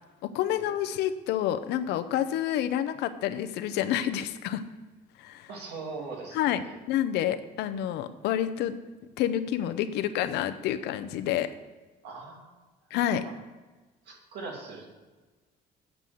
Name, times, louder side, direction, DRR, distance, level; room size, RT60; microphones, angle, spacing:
voice 1, 0.2-4.6 5.2-5.5 6.3-6.6 6.9-8.7 9.2-11.5 12.9-13.2, left 11 dB, 85° left, 10 dB, 0.6 m, -28 dB
voice 2, 5.5-6.8 12.0-12.5 13.2-13.3 14.1-14.9, right 4 dB, 85° right, 0 dB, 2.4 m, -40 dB
8.1 x 5.4 x 7.6 m, 1.3 s
cardioid pair, 110°, 17 cm